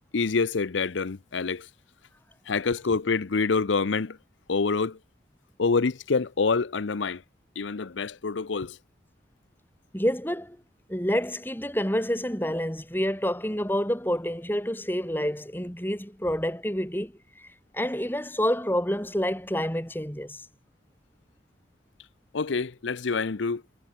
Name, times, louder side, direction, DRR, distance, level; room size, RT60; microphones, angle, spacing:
voice 1, 0.1-1.7 2.5-4.2 4.5-5.0 5.6-7.2 7.6-8.8 22.3-23.6, left 4 dB, 80° left, 0.7 m, -26 dB
voice 2, 9.9-10.6 10.9-20.5, equal, 10° left, 4.0 m, -28 dB
head